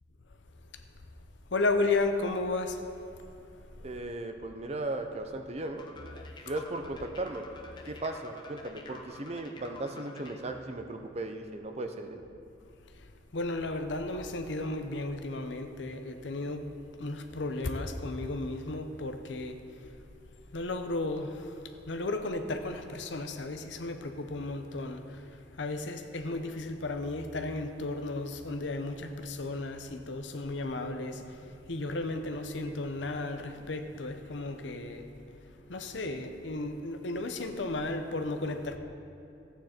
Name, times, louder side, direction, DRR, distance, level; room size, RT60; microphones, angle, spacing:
voice 1, 1.5-2.8 3.1-3.2 3.6-4.0 6.4-6.6 12.9-19.9 20.5-35.4 35.7-38.8, left 2 dB, 80° left, 7 dB, 0.8 m, -34 dB
voice 2, 3.8-5.8 6.4-7.5 7.8-12.2, right 2 dB, 35° right, 6 dB, 0.6 m, -36 dB
sound 1, 5.8-10.4, left 3 dB, 25° left, 0.9 m, -49 dB
14.0 x 9.0 x 4.4 m, 2.6 s
head